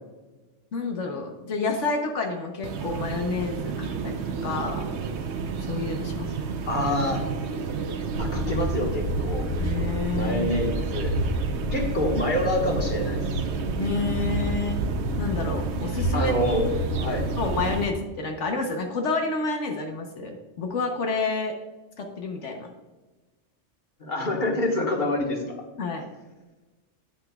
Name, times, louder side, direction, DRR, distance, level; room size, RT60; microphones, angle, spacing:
voice 1, 0.7-4.1 4.4-4.9 5.7-6.5 9.6-10.6 13.8-14.8 15.2-16.3 17.4-21.5 22.0-22.7 25.8-26.0, left 4 dB, 75° left, 3 dB, 1.3 m, -29 dB
sound 1, 2.6-17.8, right 5 dB, 70° right, 0.9 m, -31 dB
voice 2, 6.7-7.2 8.2-9.5 10.1-11.2 11.7-13.2 16.1-16.7 17.0-17.3 24.0-25.6, left 1 dB, 40° left, 0 dB, 1.6 m, -26 dB
sound 2, 8.2-17.9, equal, 60° left, 1.8 m, -30 dB
9.4 x 8.8 x 2.3 m, 1.2 s
omnidirectional pair, 1.2 m